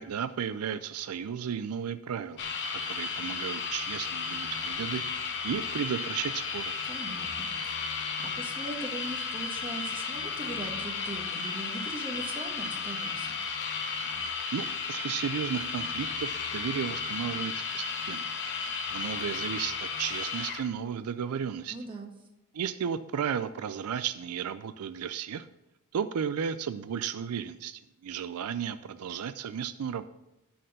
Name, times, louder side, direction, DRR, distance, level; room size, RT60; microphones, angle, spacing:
voice 1, 0.0-2.4 2.9-6.7 14.5-18.3 18.9-21.8 22.5-25.5 25.9-30.0, right 7 dB, 75° right, 12 dB, 0.4 m, -34 dB
sound 1, 2.4-20.7, left 5 dB, 55° left, 1.0 m, -34 dB
voice 2, 6.9-8.1 8.4-13.4 21.7-22.1, right 2 dB, 20° right, 1 dB, 1.4 m, -40 dB
11.5 x 4.3 x 6.5 m, 0.90 s
head